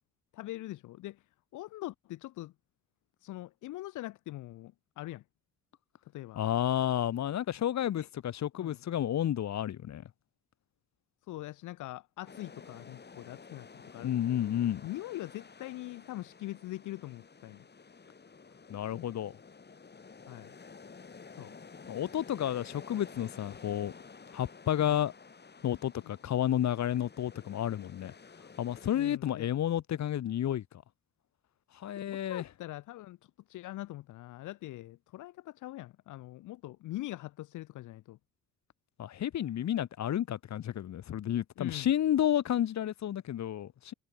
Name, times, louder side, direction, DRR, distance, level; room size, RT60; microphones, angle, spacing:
voice 1, 0.3-1.3 1.5-2.5 3.2-5.2 6.1-6.4 8.0-8.1 8.5-8.8 11.3-17.6 20.3-20.5 21.3-21.5 28.9-29.5 31.9-38.2 41.6-41.9, left 16 dB, 80° left, 0.9 m, -43 dB
voice 2, 6.4-10.0 14.0-14.8 18.7-19.3 21.9-23.9 24.3-25.1 25.6-28.1 28.6-30.6 31.8-32.4 39.0-43.9, left 11 dB, 65° left, 2.1 m, -31 dB
sound 1, 12.3-29.2, left 5 dB, 35° left, 6.9 m, -52 dB
cardioid pair, 90°, 30 cm